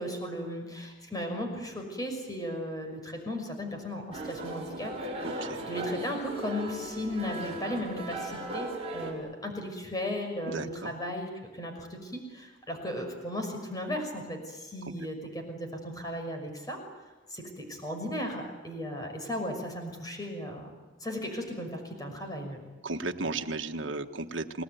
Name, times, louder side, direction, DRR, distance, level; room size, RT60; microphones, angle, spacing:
voice 1, 0.0-4.9 5.7-16.8 17.3-20.7 21.0-22.6, left 1 dB, 20° left, 4 dB, 5.9 m, -36 dB
sound 1, 4.1-9.1, right 1 dB, 30° right, 6.7 m, -37 dB
voice 2, 5.2-5.6 10.5-10.9 14.8-14.9 22.8-24.6, right 3 dB, 75° right, 4 dB, 1.5 m, -34 dB
29.5 x 19.5 x 9.4 m, 1.2 s
head